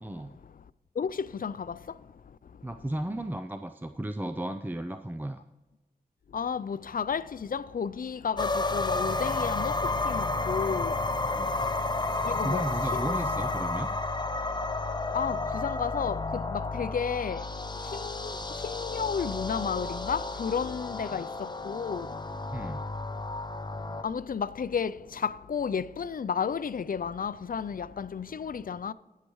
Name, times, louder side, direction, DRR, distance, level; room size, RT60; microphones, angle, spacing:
voice 1, 0.0-0.4 2.6-5.4 10.4-10.5 11.3-11.6 12.4-13.9 21.1-21.2 22.5-22.9, right 1 dB, 10° right, 0.5 m, -35 dB
voice 2, 6.3-7.2 7.5-9.7 10.0-10.9 12.2-12.6 12.9-13.2 15.1-16.2 16.5-17.4 18.0-18.3 18.6-21.3 21.6-22.1 24.0-24.9 25.2-28.9, left 6 dB, 60° left, 0.4 m, -32 dB
sound 1, 8.4-24.0, left 3 dB, 25° left, 0.7 m, -31 dB
19.0 x 6.6 x 3.1 m
cardioid pair, 45°, 16 cm